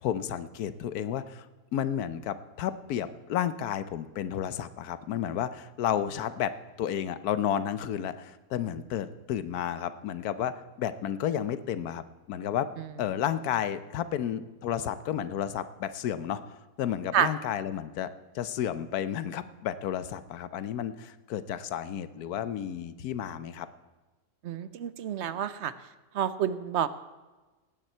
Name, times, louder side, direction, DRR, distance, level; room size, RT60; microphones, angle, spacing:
voice 1, 0.0-1.5 1.7-12.0 12.3-23.7, left 10 dB, 85° left, 13 dB, 1.2 m, -32 dB
voice 2, 24.4-25.7 26.1-26.9, right 9 dB, 60° right, 14 dB, 0.8 m, -28 dB
18.0 x 9.2 x 4.4 m, 1.2 s
omnidirectional pair, 1.6 m